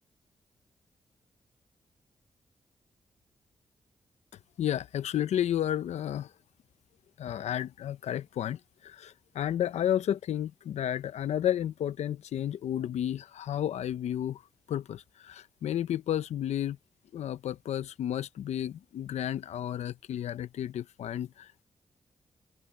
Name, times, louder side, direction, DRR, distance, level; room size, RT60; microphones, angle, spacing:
voice 1, 4.6-6.3 7.2-14.4 14.7-16.8 17.1-21.6, left 11 dB, 80° left, 0.9 m, -32 dB
supercardioid pair, 45°, 11 cm